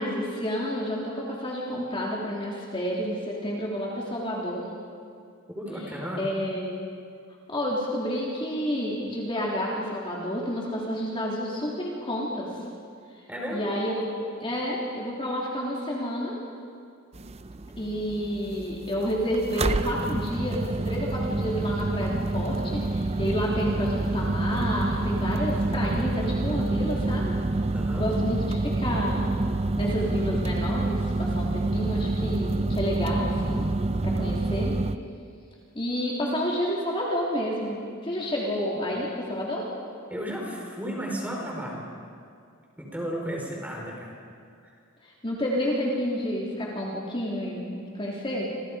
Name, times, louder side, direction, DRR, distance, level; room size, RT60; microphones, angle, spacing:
voice 1, 0.0-4.7 6.2-6.9 7.5-12.5 13.5-14.1 14.4-16.4 17.8-27.4 27.9-29.4 29.8-33.7 34.0-34.7 35.8-39.7 45.0-48.5, equal, 25° left, -4 dB, 3.4 m, -30 dB
voice 2, 5.5-6.2 13.3-13.7 27.7-28.1 40.1-41.8 42.8-44.2 44.6-44.7, equal, 5° right, -1 dB, 5.0 m, -34 dB
sound 1, 17.1-35.0, right 2 dB, 30° right, 0.6 m, -27 dB
29.0 x 28.0 x 5.2 m, 2.3 s
head